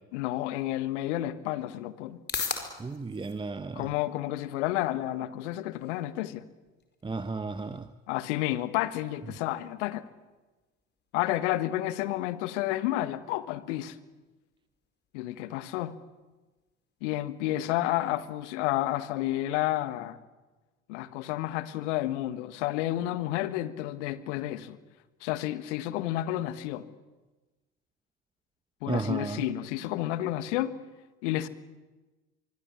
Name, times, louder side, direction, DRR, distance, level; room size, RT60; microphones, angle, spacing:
voice 1, 0.1-2.2 3.7-6.4 8.1-10.1 11.1-14.0 15.1-16.0 17.0-20.2 20.9-24.8 25.2-26.8 28.8-30.7 31.2-31.5, left 15 dB, 60° left, 1.6 m, -30 dB
sound 1, 0.8-17.8, left 5 dB, 25° left, 4.8 m, -46 dB
voice 2, 2.8-3.9 7.0-7.9 28.9-29.5, right 3 dB, 10° right, 1.0 m, -33 dB
24.0 x 24.0 x 8.5 m
figure-of-eight pair, 70°, 40 cm